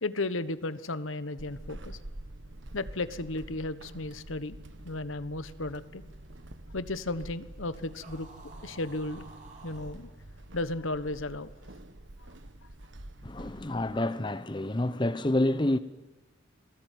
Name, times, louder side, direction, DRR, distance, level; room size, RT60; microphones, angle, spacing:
voice 1, 0.0-2.0 2.7-4.6 4.8-6.0 6.7-8.3 8.6-9.2 9.6-10.1 10.5-11.5 12.2-12.3 13.7-13.8, left 2 dB, 75° left, 1.3 m, -34 dB
Walk footsteps / Squeak, 1.4-14.0, right 1 dB, 60° right, 1.5 m, -47 dB
sound 1, 7.9-10.0, right 3 dB, 40° right, 4.4 m, -51 dB
voice 2, 13.2-15.8, left 1 dB, 25° left, 0.8 m, -28 dB
26.5 x 20.0 x 9.3 m
head